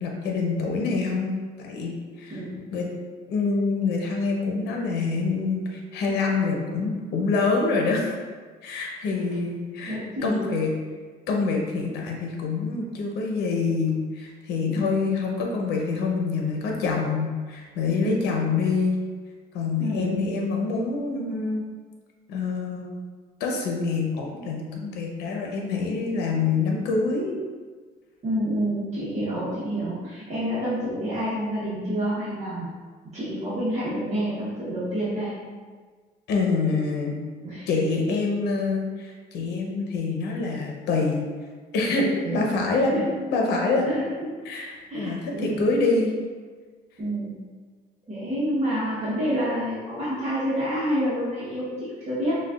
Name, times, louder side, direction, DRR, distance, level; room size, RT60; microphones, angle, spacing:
voice 1, 0.0-2.4 2.7-2.9 3.3-8.1 8.6-10.7 11.3-19.0 19.5-21.6 22.3-22.9 23.4-27.4 36.3-37.2 37.7-41.2 41.7-43.0 43.3-44.0 44.4-46.1, left 4 dB, 80° left, 0 dB, 0.7 m, -26 dB
voice 2, 2.3-2.7 9.9-10.5 14.7-15.0 18.0-18.5 19.8-20.2 28.2-32.7 33.1-35.3 37.4-37.7 42.2-42.4 42.9-43.0 43.8-44.3 44.9-45.6 47.0-47.3 48.1-52.4, equal, 40° right, -9 dB, 1.0 m, -28 dB
5.8 x 2.4 x 2.4 m, 1.5 s
cardioid pair, 110°, 17 cm